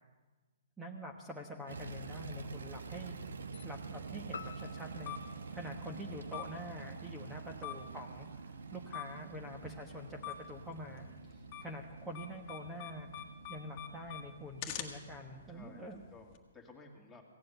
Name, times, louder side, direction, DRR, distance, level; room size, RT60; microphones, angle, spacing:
voice 1, 0.8-3.2 3.6-8.3 8.7-13.1 13.5-16.0, equal, 10° right, 1 dB, 1.2 m, -46 dB
sound 1, 1.7-15.8, right 4 dB, 75° right, 1.1 m, -47 dB
sound 2, 2.4-16.4, left 10 dB, 35° left, 1.5 m, -49 dB
sound 3, 4.3-6.8, left 6 dB, 80° left, 0.9 m, -50 dB
voice 2, 7.5-8.0 15.5-17.2, left 3 dB, 10° left, 0 dB, 2.3 m, -56 dB
16.5 x 7.5 x 8.0 m, 1.2 s
hypercardioid pair, 130°, 0 cm